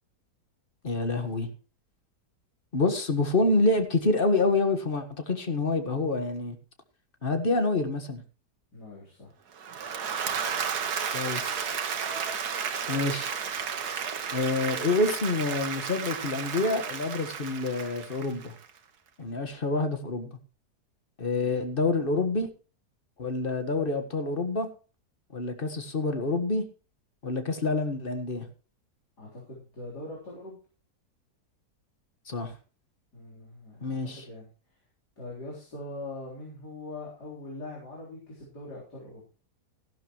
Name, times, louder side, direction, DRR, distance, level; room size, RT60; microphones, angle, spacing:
voice 1, 0.8-1.5 2.7-6.6 7.2-8.2 11.1-11.7 12.9-13.3 14.3-18.5 19.2-20.3 21.2-22.5 23.2-24.7 25.3-26.6 27.2-28.5 32.3-32.5 33.8-34.2, left 3 dB, 35° left, 8 dB, 1.6 m, -27 dB
voice 2, 8.7-9.3 29.2-30.6 33.1-34.0 34.2-34.5 35.2-39.3, left 2 dB, 80° left, -5 dB, 4.4 m, -42 dB
Applause / Crowd, 9.6-18.7, right 7 dB, 70° right, 1.7 m, -33 dB
14.0 x 12.0 x 3.0 m, 0.37 s
omnidirectional pair, 1.7 m